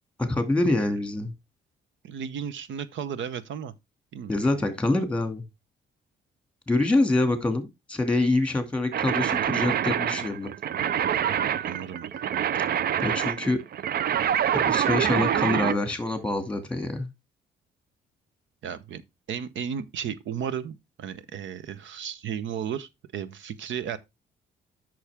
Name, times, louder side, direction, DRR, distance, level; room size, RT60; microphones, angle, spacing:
voice 1, 0.2-1.3 4.3-5.4 6.7-10.5 13.0-13.6 14.5-17.1, left 2 dB, 5° left, 2.3 m, -25 dB
voice 2, 2.0-3.7 4.1-4.7 11.4-12.1 18.6-19.0 19.3-24.0, right 8 dB, 70° right, 0.9 m, -34 dB
sound 1, 8.9-15.8, right 9 dB, 50° right, 0.5 m, -26 dB
8.4 x 6.3 x 3.5 m
cardioid pair, 90°, 20 cm